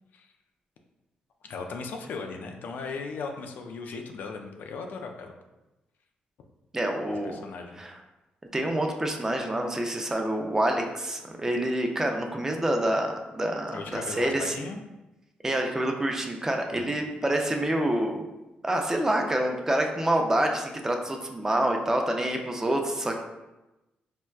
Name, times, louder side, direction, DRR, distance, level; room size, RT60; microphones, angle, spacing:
voice 1, 1.4-5.3 7.1-7.8 13.7-14.8 16.7-17.0, left 4 dB, 70° left, 3 dB, 0.4 m, -37 dB
voice 2, 6.7-7.4 7.8-7.9 8.5-14.7 15.4-18.2 18.6-23.2, right 1 dB, 15° right, 3 dB, 0.4 m, -27 dB
4.3 x 2.2 x 2.3 m, 1.0 s
cardioid pair, 85°, 3 cm